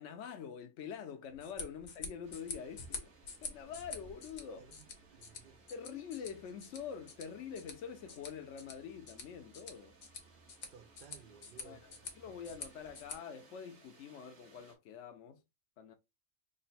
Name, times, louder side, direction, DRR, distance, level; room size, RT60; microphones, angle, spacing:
voice 1, 0.0-3.1 3.4-4.7 5.7-9.9 11.6-15.4 15.8-15.9, left 7 dB, 65° left, 1.0 m, -46 dB
sound 1, 1.3-13.2, left 4 dB, 90° left, 1.4 m, -48 dB
sound 2, 2.2-14.8, right 5 dB, 85° right, 1.5 m, -64 dB
voice 2, 5.1-5.6 10.7-12.2, right 7 dB, 65° right, 0.5 m, -58 dB
3.8 x 2.2 x 4.1 m
omnidirectional pair, 1.4 m